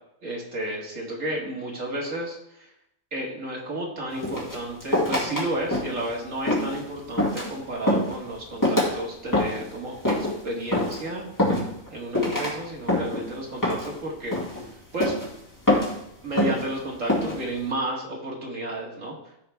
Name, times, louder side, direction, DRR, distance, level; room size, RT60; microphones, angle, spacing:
voice 1, 0.2-2.7 3.1-11.3 11.9-14.4 14.9-15.1 16.2-19.2, right 1 dB, 70° right, -2 dB, 2.2 m, -32 dB
sound 1, 4.2-5.4 5.7-6.1 6.5-6.8 7.2-7.5 7.9-8.2 8.6-8.9 9.3-9.7 10.1-10.4 10.7-11.0 11.4-11.9 12.1-12.5 12.9-13.3 13.6-14.0 14.3-14.6 15.0-15.3 15.7-16.0 16.4-16.7 17.1-17.4, left 1 dB, 15° left, 2.2 m, -24 dB
14.0 x 4.8 x 3.5 m, 0.80 s
omnidirectional pair, 1.4 m